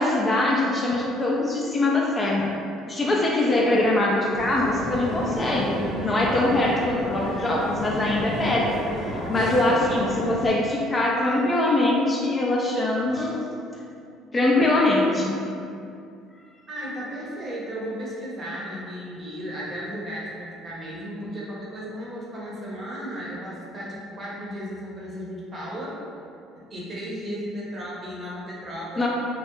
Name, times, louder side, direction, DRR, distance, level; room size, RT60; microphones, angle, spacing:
voice 1, 0.0-2.5 2.9-13.4 14.3-15.4 29.0-29.1, left 2 dB, 25° left, -2 dB, 0.3 m, -23 dB
sound 1, 4.3-10.5, left 1 dB, 55° left, 0.7 m, -31 dB
voice 2, 16.7-26.0 26.6-29.1, equal, 35° right, -5 dB, 0.7 m, -35 dB
2.2 x 2.0 x 2.9 m, 2.5 s
supercardioid pair, 95°, 0 cm